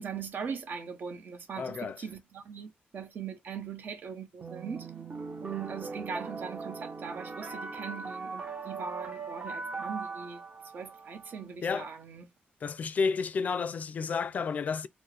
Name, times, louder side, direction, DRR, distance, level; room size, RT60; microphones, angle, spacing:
voice 1, 0.0-4.9 5.4-10.4 10.7-12.3, right 6 dB, 65° right, 0.9 m, -40 dB
voice 2, 1.6-2.0 11.6-11.9 12.6-14.9, left 5 dB, 45° left, 0.4 m, -31 dB
sound 1, 4.4-11.4, right 4 dB, 40° right, 0.9 m, -40 dB
4.5 x 2.1 x 3.2 m
wide cardioid pair, 160°, 4 cm